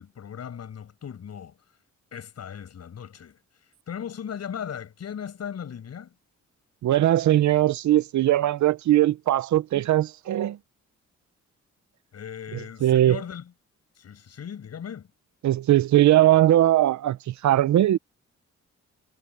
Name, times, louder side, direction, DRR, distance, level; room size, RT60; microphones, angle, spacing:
voice 1, 0.0-1.6 2.1-3.4 3.9-6.2 12.1-13.5 14.0-15.1, left 8 dB, 60° left, 6.5 m, -37 dB
voice 2, 6.8-10.6 12.8-13.2 15.4-18.0, right 13 dB, 75° right, 0.8 m, -20 dB
cardioid pair, 110°, 29 cm